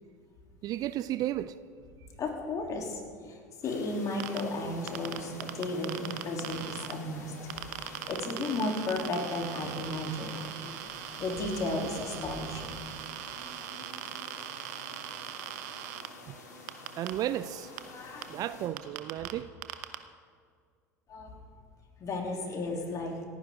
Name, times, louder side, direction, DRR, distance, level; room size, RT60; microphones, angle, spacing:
voice 1, 0.6-1.5 16.3-16.4 17.0-17.7 18.3-19.5, right 13 dB, 40° right, 0.5 m, -33 dB
voice 2, 2.2-3.4 3.6-10.7 11.2-12.8 17.9-18.3 21.1-21.4 22.0-23.2, left 2 dB, 35° left, 3.3 m, -34 dB
sound 1, 3.6-18.7, left 2 dB, 75° left, 2.6 m, -48 dB
sound 2, 4.2-4.4 4.9-6.9 7.5-16.1 16.7-17.1 17.8-17.9 18.2-18.3 18.8-19.3 19.6-20.0, right 13 dB, 60° right, 0.9 m, -40 dB
28.0 x 10.0 x 3.8 m
figure-of-eight pair, 70°, 9 cm